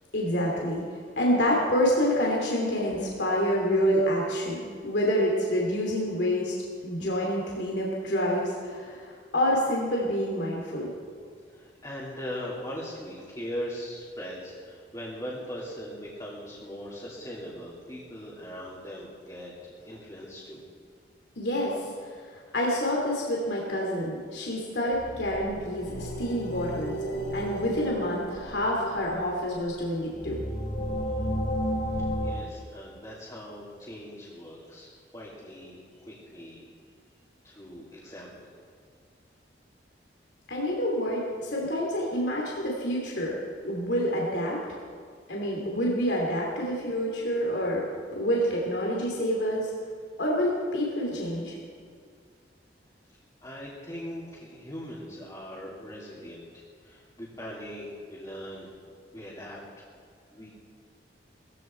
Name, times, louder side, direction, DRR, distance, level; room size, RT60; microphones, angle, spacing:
voice 1, 0.1-6.5 6.8-10.9 21.4-21.9 22.5-26.9 27.3-30.4 40.5-43.4 43.6-44.6 45.3-47.8 48.1-49.7 50.2-51.5, equal, 75° left, -2 dB, 2.9 m, -27 dB
voice 2, 11.5-19.5 19.8-20.6 31.9-36.6 37.4-38.7 53.4-56.4 56.8-58.7 59.1-59.9 60.3-60.5, equal, 20° left, -8 dB, 2.8 m, -40 dB
sound 1, 24.9-32.3, equal, 60° left, 3.1 m, -33 dB
19.5 x 15.0 x 4.5 m, 2.1 s
head